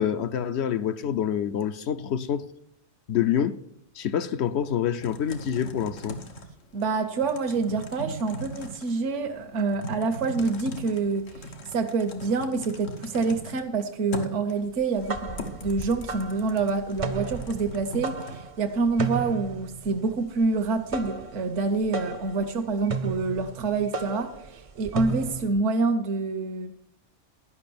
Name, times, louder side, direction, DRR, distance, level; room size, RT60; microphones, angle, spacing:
voice 1, 0.0-2.4 3.1-3.6 3.9-6.2, left 9 dB, 70° left, 11 dB, 0.8 m, -26 dB
Typing, 5.0-18.4, equal, 90° left, 1.5 m, -40 dB
voice 2, 6.7-26.7, right 4 dB, 75° right, 6 dB, 1.2 m, -27 dB
sound 1, 14.8-25.6, right 4 dB, 40° right, 0.5 m, -34 dB
11.0 x 5.6 x 6.9 m, 0.70 s
omnidirectional pair, 1.3 m